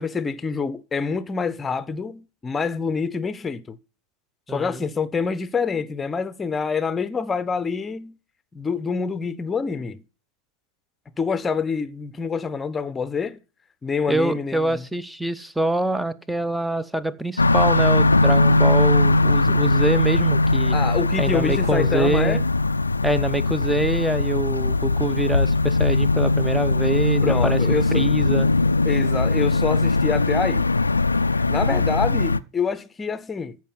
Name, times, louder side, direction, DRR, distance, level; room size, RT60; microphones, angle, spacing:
voice 1, 0.0-3.8 4.5-8.1 8.5-10.0 11.2-13.4 13.8-14.8 20.7-22.4 27.2-28.0 28.9-30.7 31.3-33.6, left 5 dB, 15° left, 1.0 m, -26 dB
voice 2, 4.5-4.8 14.1-20.8 21.2-22.4 23.0-27.6 27.9-28.5, right 2 dB, 5° right, 0.9 m, -25 dB
sound 1, 17.4-32.4, left 2 dB, 80° left, 0.5 m, -20 dB
14.0 x 5.0 x 7.4 m
figure-of-eight pair, 90°, 0 cm